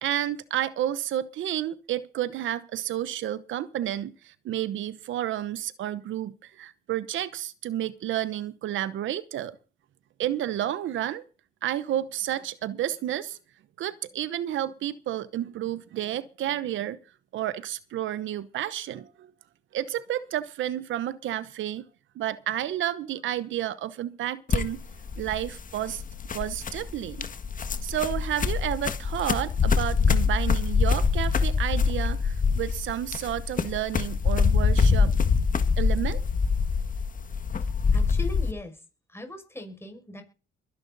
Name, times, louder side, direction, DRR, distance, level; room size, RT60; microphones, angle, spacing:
voice 1, 0.0-9.6 10.2-11.2 11.6-13.4 13.8-17.0 17.3-19.3 19.7-21.8 22.2-24.8 25.2-26.0 26.3-27.3 27.8-35.1 35.8-36.2, right 12 dB, 75° right, 1.0 m, -31 dB
sound 1, 24.5-38.5, left 5 dB, 40° left, 1.7 m, -25 dB
voice 2, 37.9-38.8 39.1-40.2, left 1 dB, 10° left, 6.2 m, -39 dB
22.0 x 10.5 x 4.1 m
cardioid pair, 90°, 20 cm